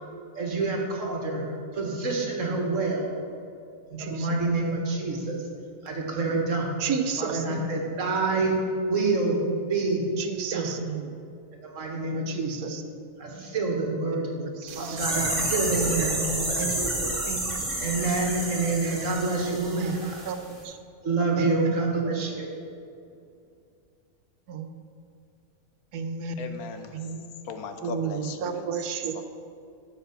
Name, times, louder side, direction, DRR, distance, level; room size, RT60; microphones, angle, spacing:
voice 1, 0.4-1.5 1.7-3.1 3.9-5.4 5.8-6.8 7.2-8.6 8.9-9.4 9.7-10.0 10.5-10.7 11.6-12.8 13.2-14.3 14.8-17.1 17.8-20.2 21.0-22.6, right 3 dB, 60° right, 0 dB, 1.9 m, -27 dB
voice 2, 4.0-4.3 6.8-7.7 10.2-11.1 12.3-12.8 14.1-15.3 15.7-16.2 16.6-16.9 17.3-17.7 19.6-20.8 21.4-21.8 24.5-24.7 25.9-26.6 26.9-27.4 27.8-29.2, right 6 dB, 85° right, 8 dB, 1.3 m, -33 dB
sound 1, 14.7-20.3 20.6-20.7, right 1 dB, 35° right, 2.1 m, -30 dB
voice 3, 26.4-27.1 27.4-28.7 29.1-29.2, left 5 dB, 80° left, 7 dB, 1.3 m, -37 dB
11.5 x 7.0 x 5.8 m, 2.5 s
omnidirectional pair, 1.5 m